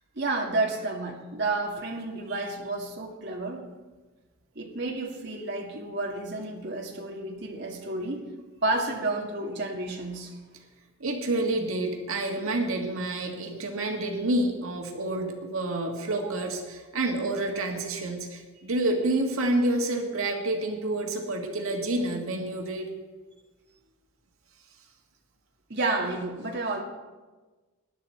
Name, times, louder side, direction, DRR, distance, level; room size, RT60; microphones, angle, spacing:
voice 1, 0.2-3.7 4.6-8.3 8.6-10.4 16.2-16.3 25.7-26.8, right 2 dB, 55° right, 0 dB, 1.8 m, -31 dB
voice 2, 11.0-22.9, right 2 dB, 80° right, 2 dB, 1.8 m, -28 dB
20.0 x 10.5 x 4.4 m, 1.3 s
head